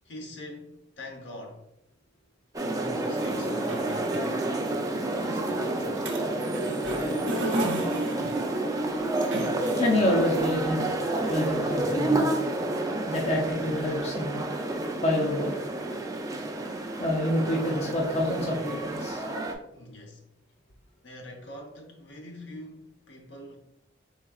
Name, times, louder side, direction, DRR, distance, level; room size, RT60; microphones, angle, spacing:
voice 1, 0.0-1.7 2.5-4.2 5.1-6.1 19.7-20.3 21.0-23.6, left 1 dB, 75° left, 0.8 m, -44 dB
sound 1, 2.5-19.5, right 2 dB, 20° right, 0.4 m, -29 dB
sound 2, 3.2-10.4, right 1 dB, 80° right, 0.8 m, -36 dB
voice 2, 7.3-8.3 9.8-10.9 11.3-12.3 13.1-14.5 15.0-15.6 17.0-19.2, left 1 dB, 35° left, 0.5 m, -28 dB
4.2 x 3.5 x 2.3 m
head